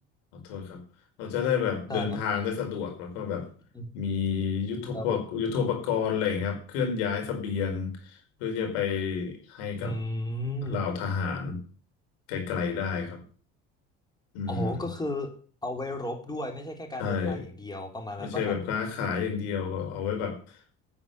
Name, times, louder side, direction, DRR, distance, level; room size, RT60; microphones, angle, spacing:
voice 1, 0.3-0.8 1.2-3.5 3.9-10.0 10.7-11.6 12.3-13.2 14.3-14.8 17.0-17.4 18.2-20.4, left 6 dB, 90° left, 4 dB, 5.1 m, -30 dB
voice 2, 9.8-10.8 14.5-15.3 15.6-18.5, left 1 dB, 15° left, 3 dB, 3.8 m, -34 dB
9.6 x 8.9 x 9.4 m, 0.42 s
supercardioid pair, 100°, 30 cm